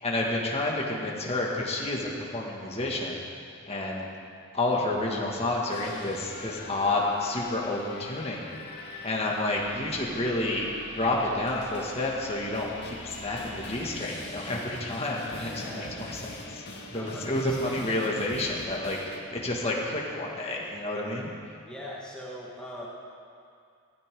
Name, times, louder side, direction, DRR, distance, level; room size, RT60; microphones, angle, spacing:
voice 1, 0.0-3.2 3.7-4.1 4.5-8.4 9.0-16.6 16.9-19.0 19.3-21.3, left 2 dB, 30° left, -2 dB, 2.1 m, -30 dB
sound 1, 5.7-19.2, left 2 dB, 50° left, 1.7 m, -43 dB
voice 2, 15.3-16.0 16.9-17.8 21.6-22.9, equal, 5° left, -5 dB, 1.5 m, -41 dB
16.5 x 15.0 x 3.9 m, 2.4 s
head